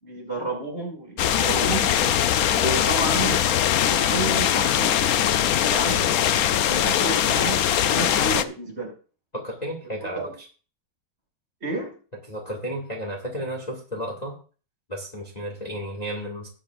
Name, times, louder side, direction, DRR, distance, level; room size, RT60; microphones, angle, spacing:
voice 1, 0.0-1.9 2.5-3.4 3.8-8.9 10.1-10.3 11.6-12.0, right 2 dB, 30° right, -2 dB, 6.0 m, -31 dB
sound 1, 1.2-8.4, left 10 dB, 80° left, 0.8 m, -21 dB
voice 2, 9.3-10.2 12.3-14.3 14.9-16.5, equal, 20° left, -2 dB, 2.1 m, -32 dB
20.0 x 8.8 x 2.5 m, 0.38 s
omnidirectional pair, 2.2 m